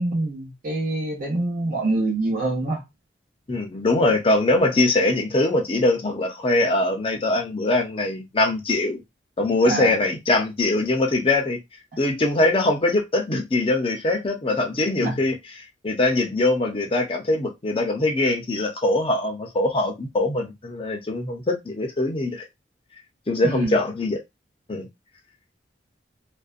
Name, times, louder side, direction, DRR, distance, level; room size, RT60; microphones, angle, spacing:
voice 1, 0.0-2.8 9.7-9.9 15.0-15.2 23.4-23.8, right 2 dB, 50° right, 0.8 m, -25 dB
voice 2, 3.5-9.0 9.4-11.6 12.0-15.4 15.8-22.4 23.3-24.2 24.7-24.9, left 2 dB, 30° left, 0.6 m, -22 dB
2.5 x 2.2 x 2.4 m
head